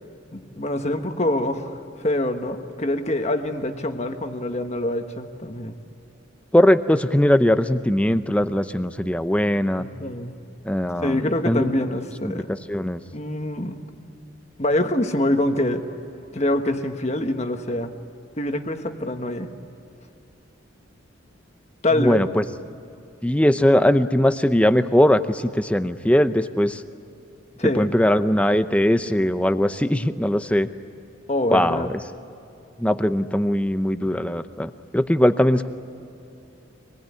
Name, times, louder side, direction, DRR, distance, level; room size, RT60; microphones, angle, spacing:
voice 1, 0.3-5.8 9.8-10.3 11.0-12.5 13.1-13.8 14.6-15.8 16.3-17.9 18.4-19.5 21.8-22.2 27.6-27.9 31.3-31.9, left 1 dB, 35° left, 6 dB, 1.4 m, -25 dB
voice 2, 6.5-9.8 10.7-11.7 12.3-12.4 12.7-13.0 22.0-22.4 23.2-26.8 27.8-30.7 31.5-31.9 32.8-35.7, left 1 dB, 5° left, 11 dB, 0.6 m, -20 dB
25.5 x 20.0 x 9.7 m, 2.7 s
head